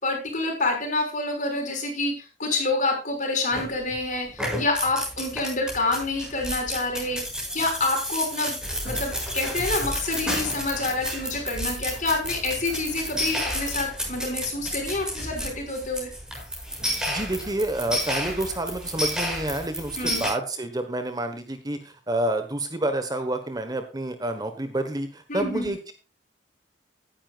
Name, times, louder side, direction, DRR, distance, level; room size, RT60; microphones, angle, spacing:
voice 1, 0.0-7.2 7.5-8.6 8.8-16.1 20.0-20.3 25.3-25.7, left 2 dB, 45° left, 2 dB, 5.8 m, -27 dB
sound 1, 3.5-4.0 4.3-20.3, equal, 5° right, 7.5 m, -31 dB
voice 2, 17.1-25.9, right 1 dB, 20° right, 8 dB, 1.3 m, -29 dB
17.5 x 10.5 x 2.5 m, 0.32 s
head